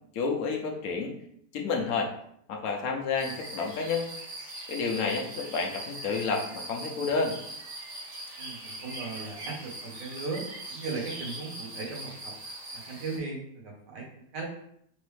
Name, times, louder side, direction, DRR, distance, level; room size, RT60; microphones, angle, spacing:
voice 1, 0.1-1.1 1.5-2.1 2.5-4.1 4.7-7.4, left 4 dB, 65° left, 1 dB, 1.1 m, -30 dB
sound 1, 3.2-13.2, right 1 dB, 70° right, 2.1 m, -41 dB
voice 2, 8.4-12.3 12.7-14.4, right 3 dB, 90° right, -1 dB, 1.7 m, -38 dB
4.1 x 3.2 x 3.2 m, 0.70 s
omnidirectional pair, 1.8 m